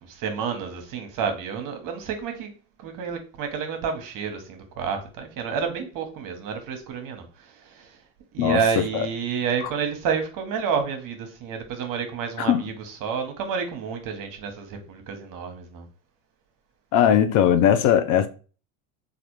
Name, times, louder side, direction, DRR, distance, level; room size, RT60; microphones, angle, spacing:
voice 1, 0.0-2.5 2.8-8.0 8.3-15.9, right 6 dB, 50° right, 0.9 m, -30 dB
voice 2, 16.9-18.3, left 9 dB, 50° left, 0.5 m, -19 dB
3.3 x 2.4 x 3.0 m
hypercardioid pair, 85°, 41 cm